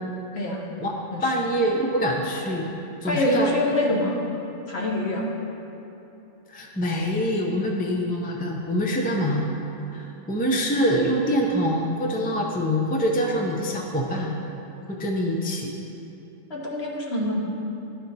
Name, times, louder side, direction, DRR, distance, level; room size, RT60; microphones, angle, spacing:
voice 1, 0.3-0.7 1.1-1.3 3.1-4.2 4.7-5.3 16.5-17.4, left 1 dB, 55° left, -2 dB, 1.3 m, -25 dB
voice 2, 1.2-2.7 3.0-3.5 6.5-9.5 9.9-14.3 14.9-15.7, equal, 15° left, -1 dB, 0.3 m, -25 dB
12.0 x 4.1 x 4.1 m, 2.9 s
omnidirectional pair, 1.4 m